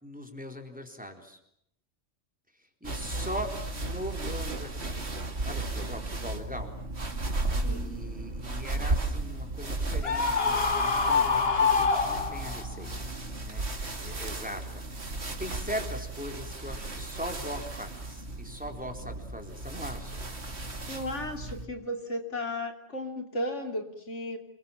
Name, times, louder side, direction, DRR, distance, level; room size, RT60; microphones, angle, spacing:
voice 1, 0.0-1.4 2.8-5.1 5.4-6.7 7.5-13.1 13.4-13.6 14.0-20.2, equal, 5° right, 3 dB, 4.1 m, -40 dB
sound 1, 2.8-21.7, right 2 dB, 60° right, 2.8 m, -35 dB
voice 2, 7.6-8.1 20.9-24.4, left 1 dB, 75° left, 5 dB, 3.5 m, -35 dB
Screaming, 10.0-12.7, left 5 dB, 55° left, 1.7 m, -25 dB
28.0 x 23.5 x 7.3 m, 0.74 s
omnidirectional pair, 1.2 m